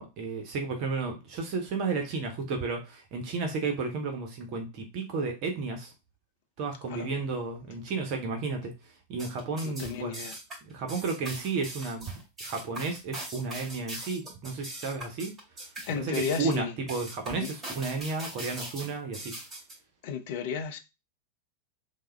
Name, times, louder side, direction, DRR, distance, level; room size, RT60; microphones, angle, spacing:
voice 1, 0.0-5.9 6.6-8.7 9.1-10.2 10.6-12.1 12.4-15.7 16.0-19.3, right 4 dB, 40° right, 0.7 m, -33 dB
sound 1, 9.1-19.8, right 2 dB, 15° right, 2.0 m, -41 dB
voice 2, 9.6-10.3 15.9-16.7 17.4-17.5 20.0-20.8, left 7 dB, 50° left, 0.4 m, -33 dB
3.4 x 2.1 x 3.1 m
figure-of-eight pair, 90°, 0 cm